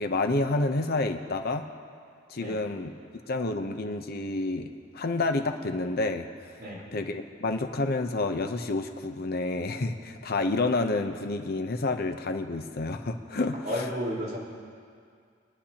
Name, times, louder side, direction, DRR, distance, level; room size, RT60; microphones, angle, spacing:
voice 1, 0.0-1.6 2.3-2.9 3.3-4.7 4.9-6.3 6.9-13.6, left 2 dB, 55° left, 6 dB, 0.7 m, -29 dB
voice 2, 6.6-6.9 13.6-14.4, equal, 45° right, -6 dB, 4.3 m, -32 dB
30.0 x 10.0 x 2.9 m, 2.2 s
head